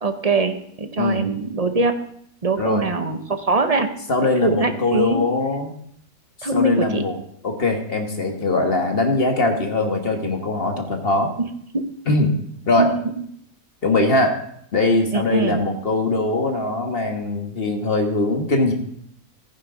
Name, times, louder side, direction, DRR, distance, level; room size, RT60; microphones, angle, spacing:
voice 1, 0.0-2.0 2.4-3.9 4.4-5.3 6.4-7.0 11.7-11.9 12.8-12.9 15.1-15.6, right 3 dB, 35° right, 8 dB, 0.7 m, -22 dB
voice 2, 1.0-1.3 2.6-2.9 4.1-5.7 6.5-7.2 7.4-11.3 12.1-12.3 12.7-12.9 13.8-14.4 14.7-18.7, left 2 dB, 40° left, 4 dB, 1.6 m, -21 dB
15.0 x 9.9 x 3.9 m, 0.66 s
omnidirectional pair, 1.6 m